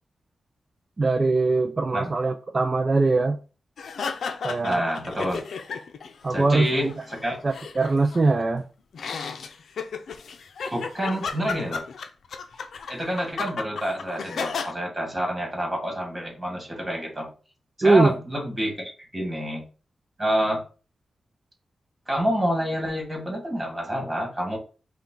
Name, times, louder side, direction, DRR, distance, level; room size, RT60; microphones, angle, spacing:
voice 1, 1.0-3.4 4.4-4.9 6.2-6.7 7.4-8.7 17.8-18.1, right 3 dB, 35° right, 0.4 m, -21 dB
sound 1, 3.8-6.1 6.4-8.4 8.9-14.7, left 5 dB, 80° left, 0.5 m, -34 dB
voice 2, 4.6-5.4 6.3-6.9 7.2-7.4 10.7-11.8 12.9-17.3 17.8-19.6 20.2-20.6 22.1-24.6, equal, 15° right, 2.0 m, -28 dB
5.7 x 2.3 x 3.8 m
cardioid pair, 85°, 0 cm